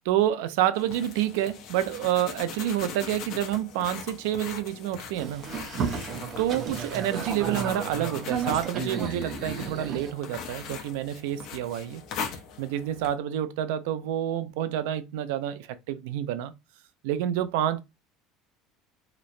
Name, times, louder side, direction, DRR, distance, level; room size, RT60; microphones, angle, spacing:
voice 1, 0.1-5.5 6.4-12.0 12.6-16.5 17.0-17.8, right 11 dB, 85° right, 0.4 m, -28 dB
sound 1, 0.7-13.1, left 6 dB, 55° left, 0.6 m, -41 dB
Boat Water vehicle, 5.2-10.1, right 5 dB, 40° right, 0.7 m, -33 dB
2.9 x 2.0 x 2.5 m
cardioid pair, 135°, 0 cm